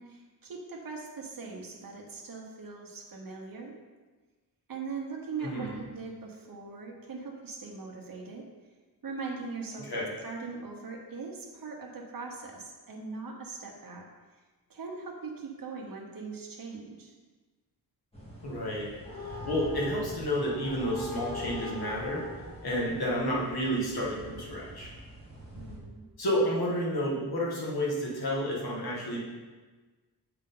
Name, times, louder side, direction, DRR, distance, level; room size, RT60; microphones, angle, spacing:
voice 1, 0.0-3.7 4.7-8.5 9.0-14.1 14.7-17.1 25.6-26.1, right 4 dB, 55° right, 0 dB, 1.1 m, -41 dB
voice 2, 5.4-5.8 9.8-10.1 18.4-18.9 19.2-22.3 22.6-24.9 26.2-29.2, equal, 65° left, -4 dB, 1.8 m, -30 dB
sound 1, 18.1-25.8, left 1 dB, 15° left, 1.8 m, -43 dB
7.6 x 4.9 x 3.9 m, 1.3 s
wide cardioid pair, 145°, 40 cm